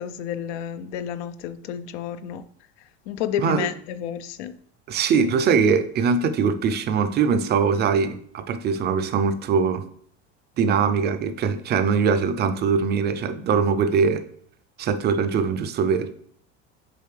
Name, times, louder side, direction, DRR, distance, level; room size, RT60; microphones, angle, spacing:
voice 1, 0.0-2.4 3.1-4.6, left 9 dB, 80° left, 11 dB, 0.6 m, -31 dB
voice 2, 4.9-9.8 10.6-14.2 14.8-16.1, right 6 dB, 30° right, 10 dB, 0.5 m, -22 dB
6.8 x 4.3 x 3.2 m, 0.63 s
supercardioid pair, 135°, 33 cm